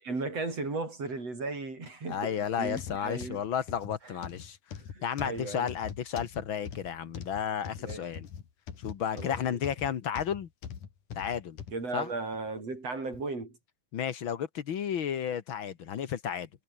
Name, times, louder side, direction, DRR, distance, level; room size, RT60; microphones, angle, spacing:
voice 1, 0.0-3.4 4.0-4.1 4.9-5.7 7.8-8.1 9.2-9.6 11.7-13.6, right 3 dB, 50° right, 8.2 m, -36 dB
voice 2, 2.1-4.6 5.0-8.3 8.8-10.5 11.1-11.6 11.9-12.1 13.9-16.5, left 8 dB, 50° left, 1.6 m, -32 dB
sound 1, 2.7-11.8 12.3-12.5 13.1-13.2, left 7 dB, 70° left, 4.4 m, -43 dB
omnidirectional pair, 3.8 m